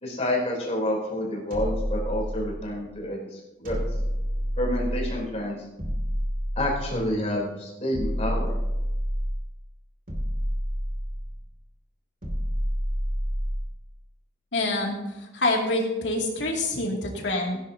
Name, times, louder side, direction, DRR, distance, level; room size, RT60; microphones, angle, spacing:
voice 1, 0.0-4.0 4.6-5.7 6.6-8.5, left 1 dB, 35° left, -2 dB, 3.6 m, -29 dB
sound 1, 1.5-2.8 3.7-5.3 5.8-7.2 7.9-9.5 10.1-11.5 12.2-13.8, equal, 50° right, 2.6 m, -29 dB
voice 2, 14.5-17.6, left 2 dB, 80° left, -1 dB, 2.6 m, -26 dB
18.0 x 10.0 x 2.8 m, 1.0 s
head